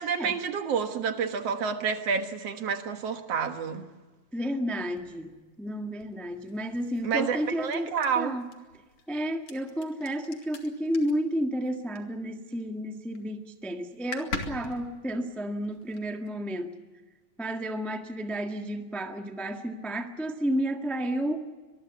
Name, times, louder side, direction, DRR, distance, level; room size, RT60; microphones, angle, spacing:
voice 1, 0.0-3.9 7.0-8.4, right 6 dB, 60° right, 2.3 m, -29 dB
voice 2, 4.3-8.5 9.1-16.7 17.4-21.4, equal, ahead, 0.7 m, -31 dB
sound 1, 4.9-12.6 12.9-13.4 13.6-13.7 13.9-16.3, left 4 dB, 60° left, 3.3 m, -43 dB
24.5 x 21.5 x 7.0 m
omnidirectional pair, 3.4 m